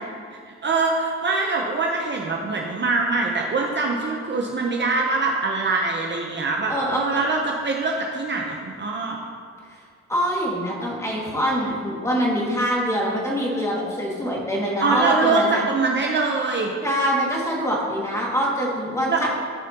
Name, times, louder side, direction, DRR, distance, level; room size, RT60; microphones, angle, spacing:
voice 1, 0.3-9.2 14.8-16.7 19.1-19.3, right 3 dB, 35° right, 0 dB, 0.9 m, -23 dB
voice 2, 6.7-7.2 10.1-15.6 16.8-19.3, equal, 10° left, -4 dB, 2.2 m, -24 dB
14.5 x 5.0 x 3.0 m, 2.1 s
cardioid pair, 90°, 30 cm